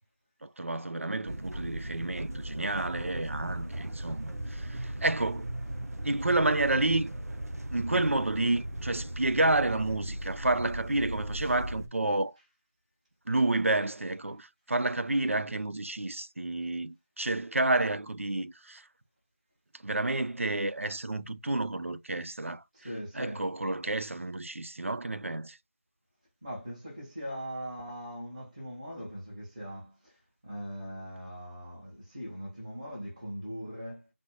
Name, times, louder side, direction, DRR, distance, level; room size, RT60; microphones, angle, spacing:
voice 1, 0.4-5.5 6.0-7.1 7.7-12.4 13.3-18.9 19.8-22.6 23.2-25.6, right 2 dB, 60° right, 0.5 m, -30 dB
sound 1, 1.3-11.9, right 1 dB, 80° right, 0.9 m, -37 dB
voice 2, 22.7-23.4 26.4-34.1, equal, 20° right, 1.5 m, -40 dB
4.0 x 3.3 x 3.0 m
figure-of-eight pair, 180°, 8 cm